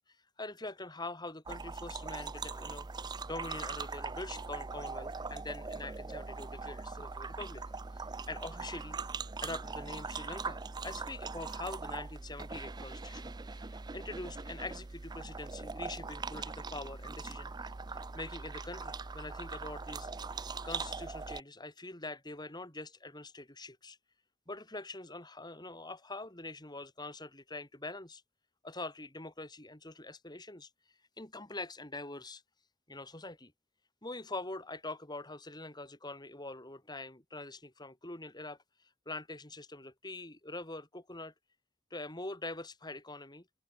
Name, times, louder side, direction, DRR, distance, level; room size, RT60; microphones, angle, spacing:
voice 1, 0.4-2.9 3.3-7.6 7.9-9.0 9.4-24.0 24.5-28.2 28.6-30.7 31.2-32.4 32.9-33.5 34.0-38.6 39.1-41.3 41.9-43.5, left 2 dB, 20° left, 4.4 m, -44 dB
sound 1, 1.5-21.4, right 4 dB, 20° right, 0.5 m, -41 dB
head